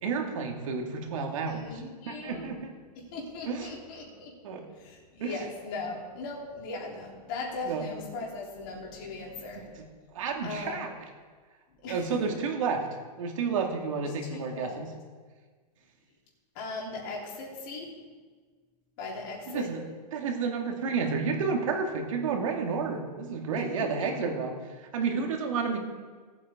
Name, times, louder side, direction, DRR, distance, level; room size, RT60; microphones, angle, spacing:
voice 1, 0.0-1.6 2.1-2.7 3.5-3.7 4.4-4.7 5.2-5.4 7.6-7.9 9.3-9.8 10.1-10.9 11.9-12.9 13.2-14.9 19.5-25.8, right 5 dB, 50° right, 2 dB, 2.2 m, -31 dB
voice 2, 1.5-2.5 3.0-4.3 4.7-9.8 10.4-10.8 11.8-12.2 14.0-14.8 16.6-17.9 19.0-19.7 23.6-23.9, left 3 dB, 35° left, -3 dB, 3.7 m, -38 dB
19.0 x 8.6 x 3.8 m, 1.5 s
hypercardioid pair, 165°, 21 cm